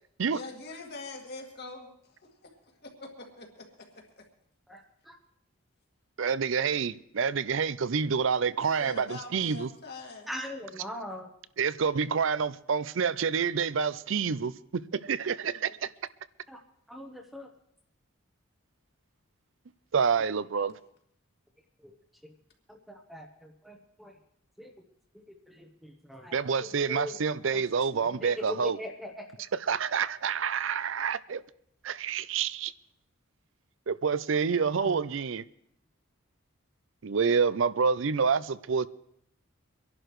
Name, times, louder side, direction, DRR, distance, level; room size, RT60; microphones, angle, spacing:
voice 1, 0.3-4.2 8.6-10.3, left 3 dB, 50° left, 2.1 m, -44 dB
voice 2, 4.7-5.2 10.3-11.3 16.5-16.6 16.9-17.5 20.6-20.7 21.8-21.9 22.2-22.3 22.7-24.1 24.6-24.7 25.3-27.2 27.5-27.6 27.9-29.3 34.8-35.0, left 1 dB, ahead, 0.9 m, -41 dB
voice 3, 6.2-9.7 11.6-15.9 19.9-20.7 26.3-28.8 29.7-31.4 31.8-32.7 33.9-35.4 37.0-38.9, right 6 dB, 65° right, 0.5 m, -28 dB
25.0 x 11.0 x 3.1 m
head